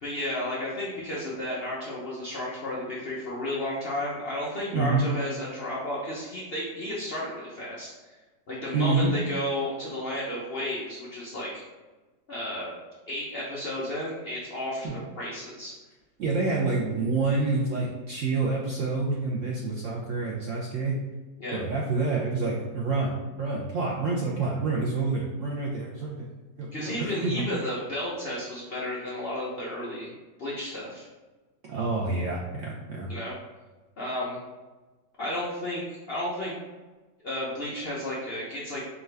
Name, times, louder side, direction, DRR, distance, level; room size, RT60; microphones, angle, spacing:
voice 1, 0.0-7.9 8.5-11.6 12.3-12.7 13.1-15.7 21.4-21.6 26.7-30.1 30.4-31.1 33.1-33.3 34.0-34.4 35.2-36.5 37.2-38.8, left 1 dB, 50° left, -7 dB, 0.7 m, -33 dB
voice 2, 4.7-5.0 8.7-9.1 14.8-15.0 16.2-21.0 21.5-26.3 26.6-27.4 31.7-33.1, right 3 dB, 65° right, -3 dB, 0.8 m, -28 dB
4.8 x 2.5 x 3.3 m, 1.2 s
omnidirectional pair, 1.9 m